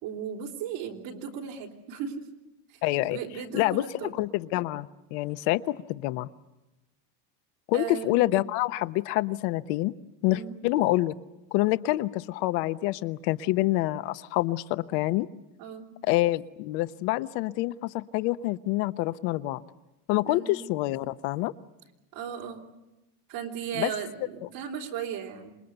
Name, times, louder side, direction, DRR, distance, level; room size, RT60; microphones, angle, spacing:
voice 1, 0.0-2.2 2.7-4.1 7.7-8.3 10.3-10.6 15.6-15.9 20.2-20.5 22.1-22.6 23.3-25.5, right 8 dB, 80° right, 2 dB, 3.7 m, -36 dB
voice 2, 2.8-3.2 3.5-6.3 7.7-9.9 10.2-11.1 11.5-15.3 16.1-19.6 20.1-21.5 23.7-23.9 24.4-24.5, left 17 dB, 80° left, 14 dB, 0.9 m, -27 dB
27.0 x 20.5 x 8.0 m, 1.0 s
cardioid pair, 125°, 47 cm